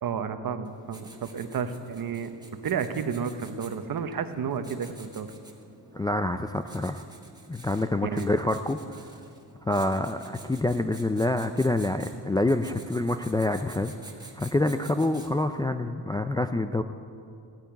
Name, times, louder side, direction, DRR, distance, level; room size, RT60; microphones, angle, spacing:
voice 1, 0.0-2.3 2.6-5.3 8.0-8.3, right 6 dB, 55° right, 9 dB, 1.0 m, -31 dB
Writing, 0.6-15.6, right 2 dB, 10° right, 1.8 m, -50 dB
voice 2, 5.9-7.0 7.5-9.1 9.7-13.9 14.3-16.8, left 2 dB, 10° left, 7 dB, 0.3 m, -27 dB
15.5 x 8.6 x 9.3 m, 2.5 s
cardioid pair, 120°, 41 cm